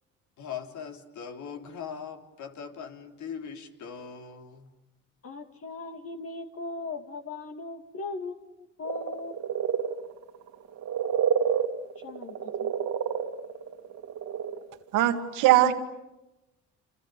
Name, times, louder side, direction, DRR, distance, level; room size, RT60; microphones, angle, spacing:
voice 1, 0.4-4.7, left 7 dB, 70° left, 3.8 m, -40 dB
voice 2, 5.2-9.6 12.0-12.7, left 3 dB, 50° left, 2.6 m, -39 dB
sound 1, 8.8-14.6 14.9-15.0, right 8 dB, 65° right, 2.4 m, -29 dB
voice 3, 14.9-15.7, right 13 dB, 85° right, 2.4 m, -20 dB
29.0 x 28.0 x 7.0 m
supercardioid pair, 70°, 31 cm